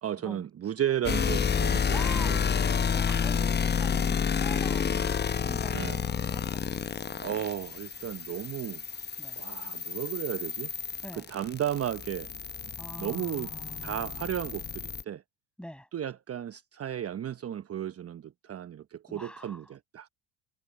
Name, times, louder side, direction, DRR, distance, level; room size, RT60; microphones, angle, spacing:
voice 1, 0.0-2.4 5.7-6.0 7.2-9.1 9.4-10.7 11.2-12.3 13.0-13.5 13.8-15.2 15.9-20.1, right 10 dB, 35° right, 1.1 m, -34 dB
sound 1, 1.0-15.0, left 6 dB, 25° left, 0.9 m, -30 dB
voice 2, 1.9-2.5 2.9-6.7 9.2-9.7 11.0-11.3 12.8-14.3 15.6-15.9 19.1-19.7, equal, ahead, 7.4 m, -45 dB
hypercardioid pair, 70°, 44 cm